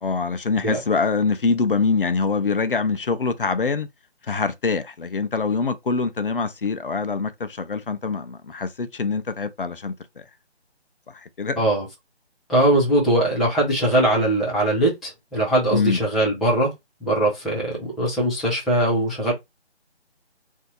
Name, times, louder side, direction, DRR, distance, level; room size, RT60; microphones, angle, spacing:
voice 1, 0.0-3.9 4.2-10.2 11.1-11.6 15.7-16.0, left 4 dB, 55° left, 0.5 m, -24 dB
voice 2, 12.5-16.7 17.0-19.3, right 1 dB, ahead, 0.4 m, -21 dB
2.7 x 2.6 x 3.7 m
figure-of-eight pair, 150°, 33 cm